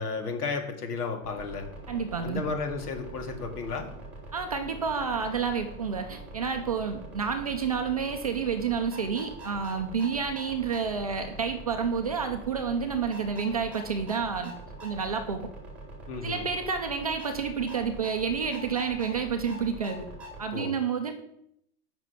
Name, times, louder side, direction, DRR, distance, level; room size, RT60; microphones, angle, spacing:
voice 1, 0.0-1.6 2.2-3.9 16.1-16.5 20.5-20.7, left 4 dB, 90° left, 3 dB, 2.4 m, -33 dB
sound 1, 1.2-20.5, right 1 dB, 5° right, 1.7 m, -44 dB
voice 2, 1.9-2.4 4.3-14.5 14.8-15.5 16.2-20.1 20.4-21.1, right 6 dB, 30° right, 5 dB, 0.4 m, -29 dB
8.4 x 6.0 x 5.7 m, 0.75 s
supercardioid pair, 165°, 45 cm